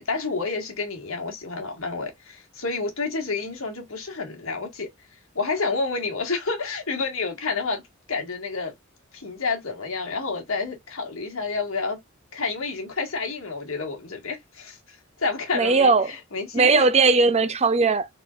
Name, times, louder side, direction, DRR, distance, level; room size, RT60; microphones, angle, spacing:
voice 1, 0.0-4.9 5.4-7.8 8.1-8.7 9.1-12.0 12.3-16.9, left 4 dB, 75° left, 2.0 m, -29 dB
voice 2, 15.5-16.1 16.5-18.1, right 4 dB, 30° right, 0.6 m, -18 dB
4.2 x 4.1 x 2.5 m
head